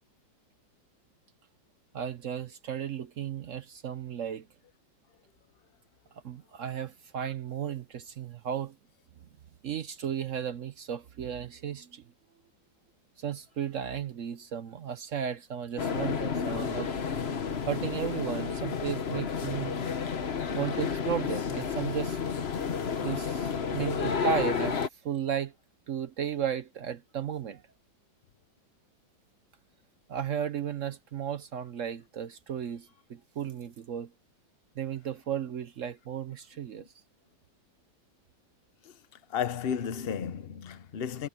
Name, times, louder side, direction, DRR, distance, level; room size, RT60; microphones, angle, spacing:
voice 1, 1.9-4.5 6.2-8.7 9.6-12.0 13.2-16.9 17.7-19.8 20.5-22.2 23.0-24.8 25.0-25.5 25.9-27.6 30.1-34.1 34.8-36.9, right 8 dB, 65° right, 0.8 m, -34 dB
sound 1, 15.8-24.9, left 6 dB, 40° left, 1.1 m, -31 dB
voice 2, 39.3-41.3, left 8 dB, 60° left, 0.6 m, -33 dB
omnidirectional pair, 2.2 m